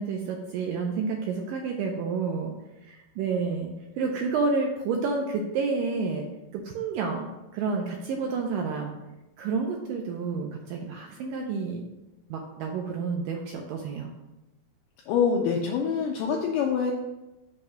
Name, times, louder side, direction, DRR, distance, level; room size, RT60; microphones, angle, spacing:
voice 1, 0.0-2.5 2.8-6.3 6.5-8.9 9.4-11.8 12.3-14.1, right 4 dB, 80° right, 1 dB, 1.9 m, -30 dB
voice 2, 15.1-16.9, left 6 dB, 85° left, 0 dB, 1.9 m, -25 dB
6.6 x 2.7 x 5.6 m, 0.99 s
omnidirectional pair, 4.3 m